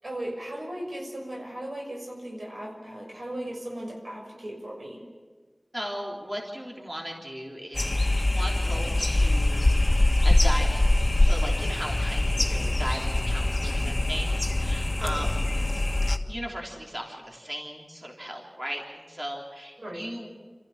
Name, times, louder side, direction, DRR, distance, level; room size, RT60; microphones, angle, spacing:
voice 1, 0.0-5.0 15.0-15.2 19.8-20.0, right 1 dB, 80° right, -1 dB, 6.2 m, -37 dB
voice 2, 5.7-7.9 8.3-15.4 15.7-15.8 16.3-20.3, equal, 30° right, -1 dB, 3.5 m, -37 dB
sound 1, 7.7-16.2, left 1 dB, 45° left, 1.5 m, -23 dB
27.5 x 15.0 x 7.3 m, 1.5 s
wide cardioid pair, 50°, 0 cm